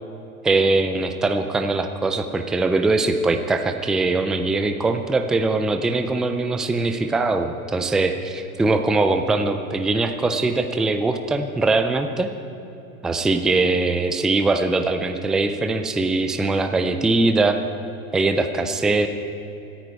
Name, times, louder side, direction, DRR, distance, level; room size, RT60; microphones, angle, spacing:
voice 1, 0.4-12.3 13.0-17.6 18.1-19.1, right 3 dB, ahead, 7 dB, 0.3 m, -21 dB
25.5 x 9.5 x 4.7 m, 2.9 s
hypercardioid pair, 100°, 44 cm